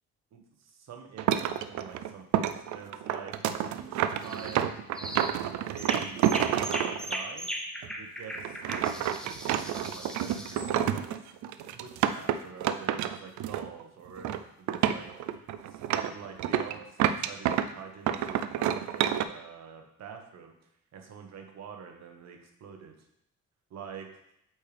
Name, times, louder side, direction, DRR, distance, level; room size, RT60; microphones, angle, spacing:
voice 1, 0.3-3.4 3.7-4.9 5.7-6.3 6.7-7.5 8.0-11.0 11.7-14.3 14.6-15.1 15.7-20.5 20.9-22.9 23.7-24.1, right 7 dB, 65° right, 3 dB, 1.2 m, -46 dB
sound 1, 1.2-7.2 7.8-7.9 8.4-13.8 14.1-14.4 14.7-17.7 18.1-19.2, right 10 dB, 80° right, 0.4 m, -29 dB
sound 2, 4.2-4.6 5.0-5.4 5.8-10.7, equal, 5° left, 0.8 m, -38 dB
8.2 x 4.5 x 3.4 m, 0.77 s
cardioid pair, 105°, 29 cm